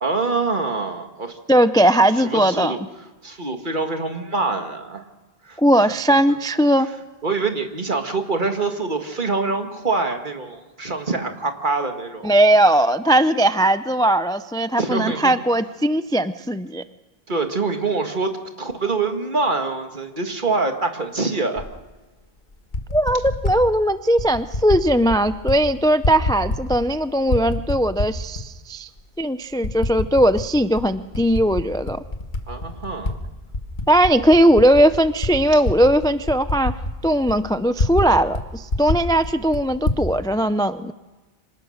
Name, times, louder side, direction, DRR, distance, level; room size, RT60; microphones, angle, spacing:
voice 1, 0.0-1.4 2.2-2.8 3.2-5.0 5.4-5.9 7.2-12.3 14.8-15.3 17.3-18.3 18.6-21.6 32.5-33.1, right 3 dB, 50° right, 5 dB, 2.0 m, -25 dB
voice 2, 1.5-2.7 5.6-6.9 12.2-16.8 22.9-28.9 29.2-32.0 33.9-36.7 37.0-40.9, right 1 dB, 5° left, 12 dB, 0.4 m, -18 dB
Typing, 21.6-21.7 22.5-23.6 24.2-24.8 25.1-25.6 25.9-26.9 27.2-28.4 29.0-29.1 29.6-30.5 30.8-33.1 33.5-38.1 38.3-38.4 38.7-40.0, left 2 dB, 50° left, 1.9 m, -26 dB
25.5 x 18.5 x 6.5 m, 1.2 s
omnidirectional pair, 1.0 m